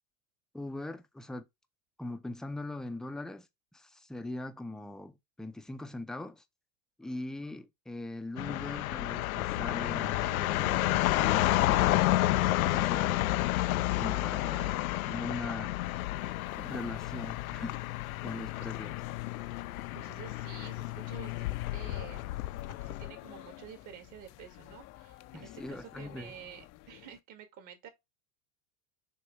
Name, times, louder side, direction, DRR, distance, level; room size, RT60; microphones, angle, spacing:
voice 1, 0.5-1.5 2.0-3.5 3.7-6.4 7.0-12.4 12.7-13.3 14.0-14.7 15.1-15.8 16.6-17.7 18.2-19.0 25.3-26.3, left 2 dB, ahead, 0.6 m, -41 dB
sound 1, 8.4-23.1, left 16 dB, 80° left, 0.5 m, -30 dB
voice 2, 14.5-15.2 18.6-18.7 19.2-19.4 19.9-27.9, right 8 dB, 45° right, 2.1 m, -50 dB
sound 2, 15.6-27.2, left 16 dB, 40° left, 0.6 m, -50 dB
6.8 x 3.1 x 4.7 m
hypercardioid pair, 100°, 42 cm